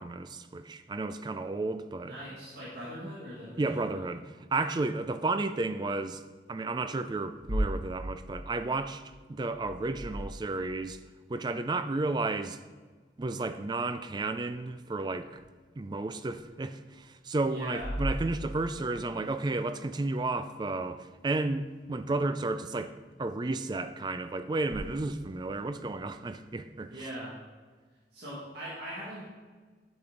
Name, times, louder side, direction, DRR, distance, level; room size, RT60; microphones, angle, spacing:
voice 1, 0.0-2.1 3.6-6.2 6.5-11.0 11.3-12.6 13.2-15.4 15.8-26.9, right 2 dB, 25° right, 10 dB, 0.3 m, -32 dB
voice 2, 2.0-4.1 17.5-18.0 26.9-27.3 28.1-29.3, equal, 65° right, -8 dB, 2.0 m, -41 dB
sound 1, 7.3-10.9 15.3-15.4 16.3-16.4 17.7-19.0 24.6-24.8, equal, 50° right, 1.8 m, -36 dB
8.9 x 6.1 x 3.9 m, 1.4 s
head